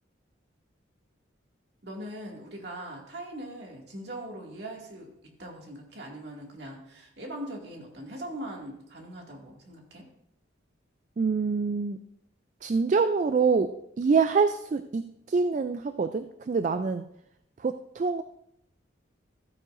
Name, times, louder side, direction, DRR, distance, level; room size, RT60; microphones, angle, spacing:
voice 1, 1.8-5.1 5.4-10.0, right 1 dB, 60° right, 0 dB, 2.2 m, -41 dB
voice 2, 11.2-12.0 12.6-15.0 15.3-17.1 17.6-18.2, right 5 dB, 40° right, 9 dB, 0.3 m, -25 dB
15.0 x 8.6 x 2.6 m, 0.79 s
head